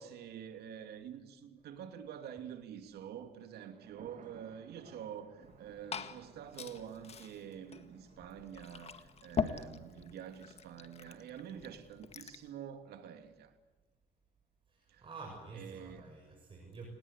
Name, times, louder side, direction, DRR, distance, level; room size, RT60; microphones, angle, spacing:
voice 1, 0.0-13.5 14.9-15.0 15.5-16.0, right 9 dB, 70° right, 2.8 m, -47 dB
sound 1, 3.5-10.9, right 7 dB, 50° right, 2.1 m, -61 dB
Glass / Fill (with liquid), 5.4-12.5, left 6 dB, 40° left, 1.9 m, -43 dB
voice 2, 14.7-16.9, right 4 dB, 30° right, 6.6 m, -49 dB
30.0 x 19.5 x 8.3 m
cardioid pair, 110°, 17 cm